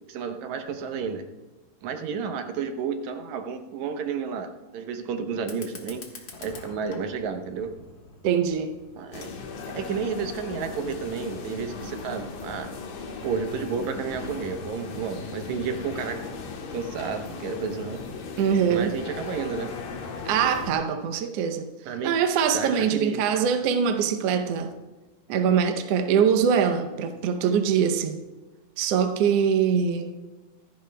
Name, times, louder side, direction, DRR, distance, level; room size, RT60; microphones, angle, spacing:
voice 1, 0.1-1.2 1.8-6.0 6.4-7.7 8.9-9.3 9.7-12.7 13.2-16.2 16.7-18.0 18.7-19.7 21.9-22.1 22.5-23.3, right 6 dB, 70° right, 6 dB, 2.0 m, -31 dB
Fire, 5.4-10.4, left 4 dB, 50° left, 1.5 m, -47 dB
voice 2, 8.2-8.7 18.4-19.0 20.3-21.7 22.0-24.7 25.3-28.2 28.8-30.1, right 7 dB, 85° right, 5 dB, 1.3 m, -23 dB
sound 1, 9.1-20.7, left 4 dB, 90° left, 3.0 m, -37 dB
25.5 x 10.5 x 2.2 m, 1.1 s
omnidirectional pair, 3.8 m